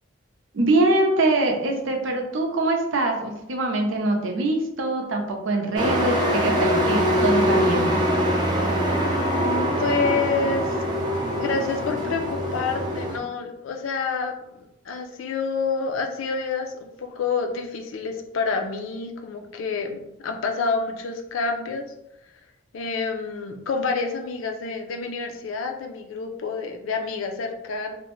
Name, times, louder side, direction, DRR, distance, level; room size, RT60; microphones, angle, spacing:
voice 1, 0.5-7.9, right 2 dB, 80° right, 1 dB, 0.6 m, -23 dB
Truck, 5.8-13.2, equal, 20° right, 0.4 m, -23 dB
voice 2, 9.3-10.8 11.4-21.9 22.7-28.0, left 4 dB, 85° left, 5 dB, 0.4 m, -28 dB
2.6 x 2.0 x 3.0 m, 0.83 s
head